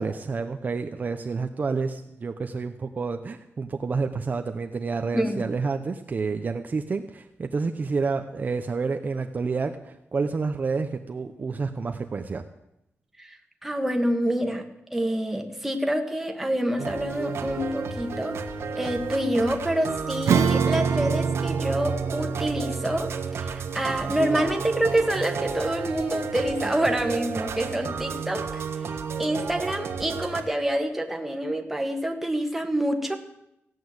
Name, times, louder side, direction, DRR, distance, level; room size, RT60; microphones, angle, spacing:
voice 1, 0.0-12.4, right 4 dB, 35° right, 6 dB, 0.7 m, -29 dB
voice 2, 13.6-14.6 14.9-18.4 18.8-23.1 23.3-28.6 29.2-33.2, right 1 dB, 5° right, 3 dB, 1.6 m, -27 dB
sound 1, 16.8-30.4, right 5 dB, 65° right, 1.4 m, -33 dB
Acoustic guitar / Strum, 20.3-26.3, right 6 dB, 85° right, 0.6 m, -28 dB
16.5 x 9.2 x 7.9 m, 0.84 s
wide cardioid pair, 145°, 5 cm